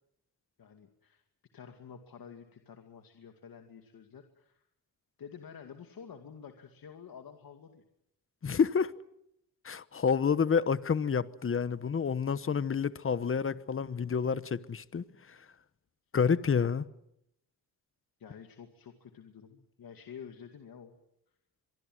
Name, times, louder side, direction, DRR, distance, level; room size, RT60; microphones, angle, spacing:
voice 1, 0.6-1.2 1.5-4.7 5.2-7.8 15.1-15.3 18.2-21.0, left 7 dB, 60° left, 2.3 m, -50 dB
voice 2, 8.4-8.9 9.6-15.4 16.1-16.8, left 6 dB, 35° left, 1.1 m, -29 dB
24.5 x 23.5 x 7.8 m
cardioid pair, 100°, 39 cm